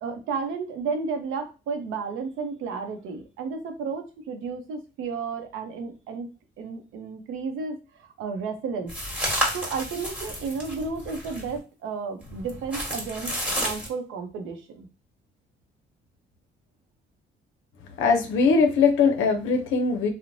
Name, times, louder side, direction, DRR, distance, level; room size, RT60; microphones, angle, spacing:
voice 1, 0.0-6.3 6.6-8.9 9.5-14.9, right 5 dB, 85° right, 6 dB, 0.6 m, -32 dB
sound 1, 8.9-11.6 12.2-13.9, equal, 5° right, 1.3 m, -31 dB
voice 2, 18.0-20.1, left 5 dB, 80° left, 4 dB, 0.5 m, -21 dB
3.0 x 2.0 x 2.6 m, 0.32 s
cardioid pair, 90°, 20 cm